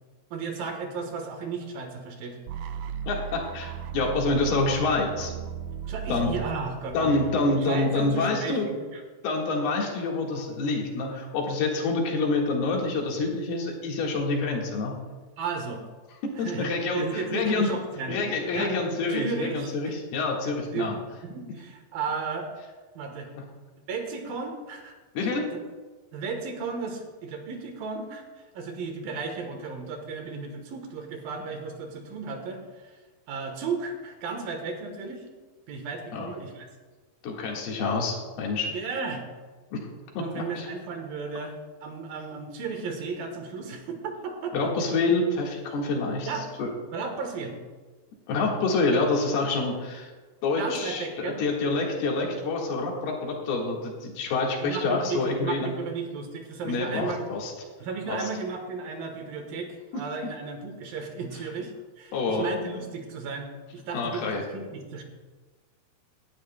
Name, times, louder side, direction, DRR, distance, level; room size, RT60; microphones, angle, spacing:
voice 1, 0.3-2.4 5.9-7.1 7.5-9.0 15.4-15.8 16.4-18.2 18.5-18.8 19.1-19.7 20.4-22.5 22.9-23.3 23.9-24.9 25.2-25.4 26.1-28.2 28.5-33.0 33.3-35.2 35.7-36.7 38.7-39.2 40.2-44.7 46.3-46.6 46.9-47.6 50.6-51.4 54.6-57.3 57.8-65.0, right 4 dB, 75° right, 4 dB, 2.8 m, -34 dB
sound 1, 2.5-8.4, right 8 dB, 90° right, 2.5 m, -37 dB
voice 2, 3.1-5.3 6.1-6.3 6.9-8.7 9.2-15.0 16.4-17.7 18.1-20.9 25.2-25.5 36.1-36.3 37.2-38.7 39.7-39.8 40.4-40.7 44.5-46.3 46.6-46.7 48.3-50.1 50.4-55.7 56.7-57.5 58.1-58.2 62.1-62.4 63.9-64.4, left 3 dB, 85° left, -1 dB, 3.7 m, -27 dB
18.0 x 11.0 x 2.2 m, 1.3 s
omnidirectional pair, 4.4 m